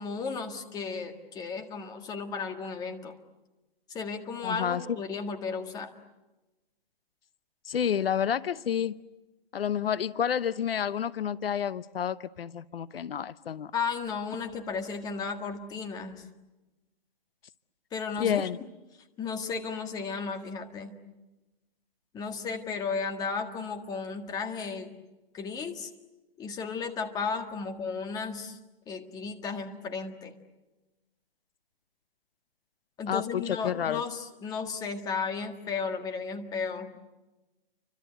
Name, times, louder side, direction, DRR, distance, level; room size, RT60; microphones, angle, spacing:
voice 1, 0.0-3.1 3.9-5.9 13.7-16.3 17.9-18.4 19.2-20.9 22.1-25.0 25.3-25.9 26.4-28.6 28.9-30.3 33.0-36.9, left 5 dB, 10° left, 5 dB, 1.7 m, -34 dB
voice 2, 4.4-4.8 7.6-9.0 9.5-13.7 18.2-18.6 33.1-34.0, left 8 dB, 70° left, 17 dB, 0.9 m, -29 dB
30.0 x 25.0 x 8.0 m, 1.1 s
hypercardioid pair, 155°, 30 cm